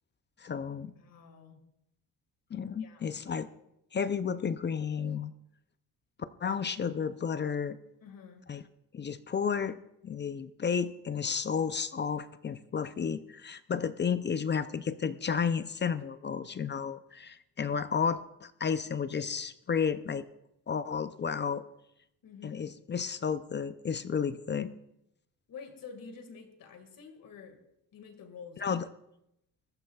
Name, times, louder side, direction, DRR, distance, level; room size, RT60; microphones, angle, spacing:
voice 1, 0.4-0.9 2.5-3.5 3.9-5.3 6.4-7.8 8.5-8.6 8.9-9.8 10.0-20.2 20.7-21.6 22.4-24.7 28.6-28.9, left 6 dB, 30° left, 12 dB, 0.5 m, -32 dB
voice 2, 1.0-1.7 2.8-3.2 8.0-8.5 22.2-22.7 25.5-27.6 27.9-28.8, left 5 dB, 65° left, 6 dB, 2.0 m, -49 dB
20.5 x 13.5 x 2.3 m, 0.81 s
cardioid pair, 120°, 36 cm